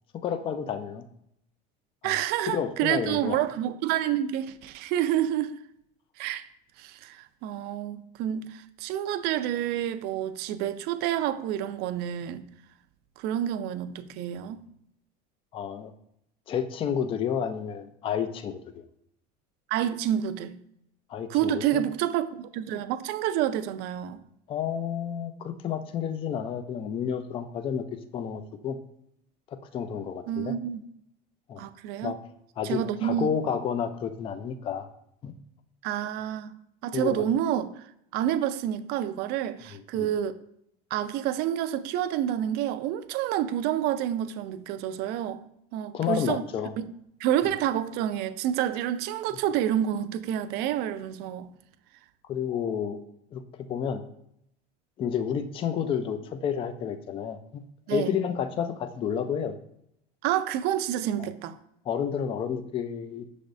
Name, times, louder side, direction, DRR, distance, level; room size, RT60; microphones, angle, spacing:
voice 1, 0.2-1.0 2.0-2.2 2.5-3.5 15.5-15.9 16.5-18.8 21.1-21.8 24.5-27.8 28.1-28.8 29.5-30.5 31.5-31.7 32.0-32.2 32.6-34.9 35.2-35.3 36.9-37.3 39.7-40.1 45.9-46.7 52.3-53.0 53.3-53.4 53.7-54.0 55.0-59.6 61.2-61.3 61.9-63.2, left 8 dB, 30° left, 0.3 m, -30 dB
voice 2, 2.0-5.6 6.2-6.5 6.8-12.5 13.2-14.6 19.7-20.6 21.3-24.2 30.3-30.8 31.6-32.1 32.6-33.3 35.8-36.5 36.8-37.9 38.1-40.3 40.9-45.4 45.7-46.4 46.8-46.9 47.2-51.5 57.9-58.2 60.2-61.6, right 11 dB, 60° right, 0.4 m, -28 dB
6.2 x 3.3 x 2.5 m
supercardioid pair, 120°, 19 cm